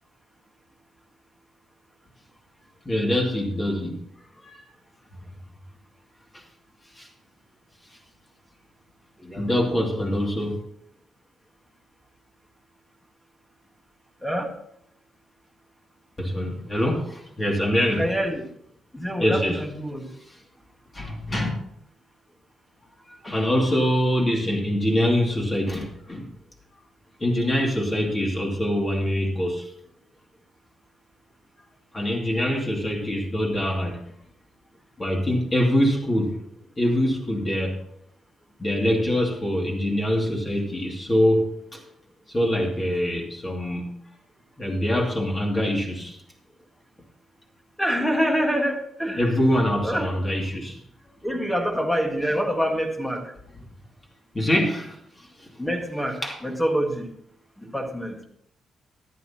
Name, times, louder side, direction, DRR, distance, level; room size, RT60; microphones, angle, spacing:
voice 1, 2.8-4.0 4.4-4.6 6.3-6.4 6.9-7.1 9.2-10.6 16.2-18.0 19.2-19.6 20.3-20.4 20.9-21.5 23.1-26.3 27.2-29.7 31.9-34.0 35.0-36.4 36.8-37.8 38.6-41.8 42.3-43.9 44.6-46.2 49.2-50.8 54.3-55.5 56.2-56.4, equal, 20° left, -1 dB, 2.6 m, -24 dB
voice 2, 18.0-18.4 18.9-20.1 47.8-49.2 49.8-50.1 51.2-53.2 55.6-56.2 56.4-57.0 57.7-58.1, equal, 5° left, 2 dB, 1.6 m, -25 dB
14.0 x 11.5 x 2.9 m, 0.71 s
cardioid pair, 140°, 0 cm